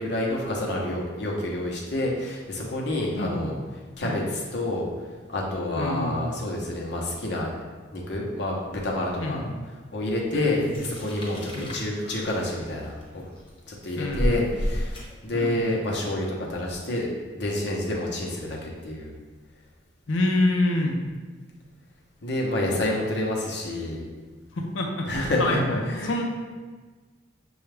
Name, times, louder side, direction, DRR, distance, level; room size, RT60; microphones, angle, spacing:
voice 1, 0.0-3.5 4.0-4.9 5.3-7.5 7.9-9.4 9.9-13.2 13.7-19.1 22.2-24.0 25.1-26.2, left 1 dB, 60° left, -2 dB, 0.9 m, -28 dB
voice 2, 3.2-3.5 4.0-4.2 5.8-6.3 9.2-9.5 10.3-10.8 11.6-11.7 14.0-14.4 15.3-15.7 20.1-21.0 24.6-26.2, left 1 dB, 90° left, 1 dB, 0.6 m, -27 dB
sound 1, 10.5-15.7, equal, 25° left, 1.0 m, -32 dB
6.7 x 2.4 x 3.3 m, 1.4 s
head